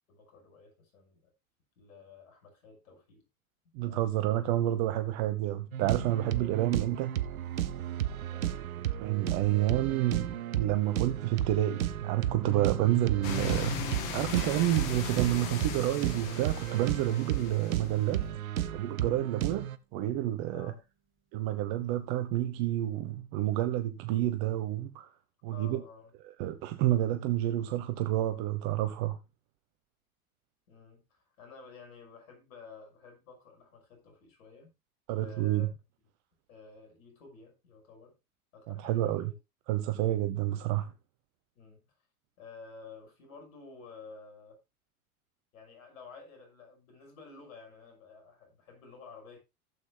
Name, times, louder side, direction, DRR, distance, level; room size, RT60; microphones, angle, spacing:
voice 1, 0.1-1.3 1.8-3.2 3.9-4.5 6.2-6.6 8.3-8.5 18.0-18.4 20.5-20.8 25.5-26.1 30.7-34.7 35.2-35.7 36.5-38.1 38.5-39.4 39.9-40.2 41.6-41.8 42.4-44.6 45.5-49.4, left 4 dB, 70° left, 6.0 m, -52 dB
voice 2, 3.7-7.2 9.0-13.8 14.1-18.2 18.7-20.7 21.3-25.1 25.4-25.8 26.4-29.2 35.1-35.7 38.7-39.3 39.7-40.9, right 14 dB, 45° right, 1.0 m, -29 dB
sound 1, 5.7-19.8, right 12 dB, 75° right, 1.0 m, -33 dB
sound 2, 13.2-18.0, left 8 dB, 45° left, 2.3 m, -38 dB
Acoustic guitar, 14.4-21.2, right 5 dB, 30° right, 3.3 m, -55 dB
15.5 x 8.4 x 2.2 m
hypercardioid pair, 90°, 43 cm